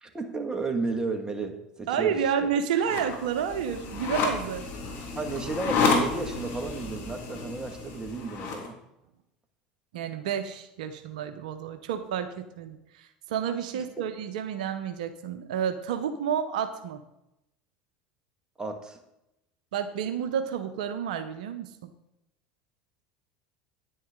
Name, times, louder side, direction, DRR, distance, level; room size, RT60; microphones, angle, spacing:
voice 1, 0.0-2.2 5.1-8.7 13.7-13.8 18.6-19.0, right 3 dB, 20° right, 5 dB, 1.7 m, -33 dB
voice 2, 1.9-4.7 9.9-17.0 19.7-21.9, right 8 dB, 75° right, 9 dB, 0.7 m, -30 dB
sound 1, 2.8-8.7, left 4 dB, 55° left, 2.6 m, -30 dB
9.6 x 9.3 x 3.7 m, 0.87 s
hypercardioid pair, 80°, 4 cm